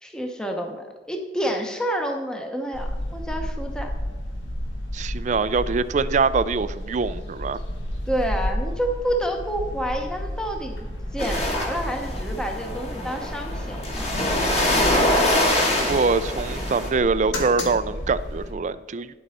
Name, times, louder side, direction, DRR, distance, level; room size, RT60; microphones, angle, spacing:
voice 1, 0.0-3.9 8.1-14.1, equal, 5° left, 3 dB, 0.8 m, -29 dB
sound 1, 2.7-18.5, equal, 90° left, 1.8 m, -32 dB
voice 2, 4.9-7.6 15.8-19.1, right 4 dB, 40° right, 15 dB, 0.3 m, -24 dB
sound 2, 11.2-16.9, left 1 dB, 35° left, 1.8 m, -24 dB
10.5 x 8.0 x 4.2 m, 1.3 s
head